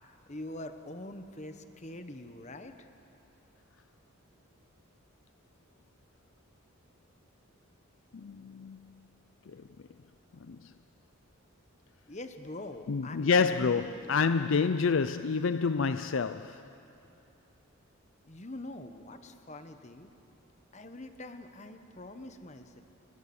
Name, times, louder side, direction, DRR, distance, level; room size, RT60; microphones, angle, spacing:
voice 1, 0.0-2.9 12.1-14.1 18.2-20.1 20.7-22.8, left 1 dB, 30° left, 1.2 m, -44 dB
voice 2, 8.1-8.9 9.5-9.6 10.5-10.7 12.9-16.6, left 5 dB, 60° left, 0.5 m, -28 dB
30.0 x 22.0 x 7.1 m
head